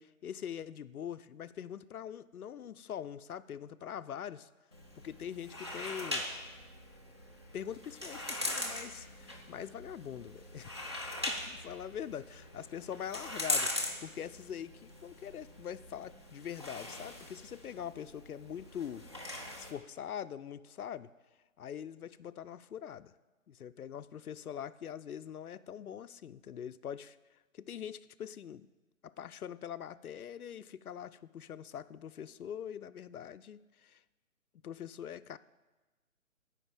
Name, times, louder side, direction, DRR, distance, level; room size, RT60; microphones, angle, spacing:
voice 1, 0.0-4.5 5.0-6.3 7.5-10.7 11.3-19.2 19.6-21.1 21.6-23.1 23.5-27.2 27.5-28.7 29.0-34.0 34.6-35.4, left 9 dB, 85° left, 15 dB, 0.5 m, -43 dB
sound 1, 4.7-19.7, left 1 dB, 20° right, 0.5 m, -41 dB
9.1 x 5.3 x 7.8 m, 1.2 s
figure-of-eight pair, 150°, 43 cm